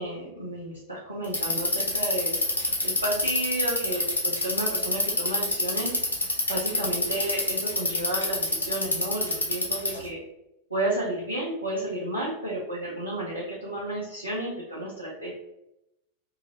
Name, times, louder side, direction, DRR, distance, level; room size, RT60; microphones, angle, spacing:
voice 1, 0.0-2.4 2.8-5.9 6.5-10.2 10.7-15.3, right 1 dB, 85° right, -6 dB, 0.7 m, -32 dB
Bicycle, 1.2-10.0, left 2 dB, 75° left, 0.8 m, -26 dB
2.7 x 2.6 x 3.0 m, 0.86 s
figure-of-eight pair, 90°, 0 cm